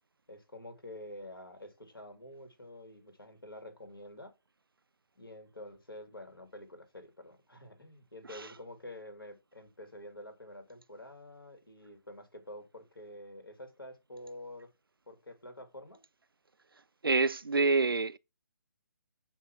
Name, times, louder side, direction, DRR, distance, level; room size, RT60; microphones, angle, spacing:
voice 1, 0.3-4.3 5.2-14.7 15.1-16.0, left 1 dB, 75° left, 2.7 m, -48 dB
voice 2, 17.0-18.2, right 3 dB, 75° right, 0.5 m, -27 dB
7.0 x 2.9 x 5.7 m
figure-of-eight pair, 145°, 12 cm